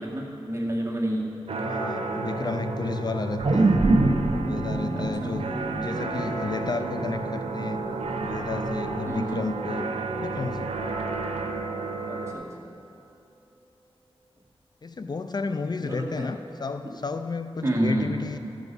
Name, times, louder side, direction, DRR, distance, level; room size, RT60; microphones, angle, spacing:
voice 1, 0.0-1.3 5.0-5.4 9.0-9.5 12.1-12.7 15.8-16.3 16.8-16.9 17.6-18.1, right 1 dB, 30° right, -3 dB, 1.8 m, -29 dB
sound 1, 1.5-12.3, right 3 dB, 90° right, 0.7 m, -32 dB
voice 2, 1.6-3.8 4.4-7.8 8.2-9.9 10.2-10.7 14.8-18.4, left 4 dB, 45° left, 8 dB, 0.4 m, -32 dB
sound 2, 3.4-7.9 8.3-8.4, right 2 dB, 75° right, 1.2 m, -25 dB
sound 3, 9.4-13.8 14.1-14.5, equal, 10° left, 0.8 m, -47 dB
13.5 x 6.1 x 5.3 m, 2.7 s
wide cardioid pair, 70°, 10 cm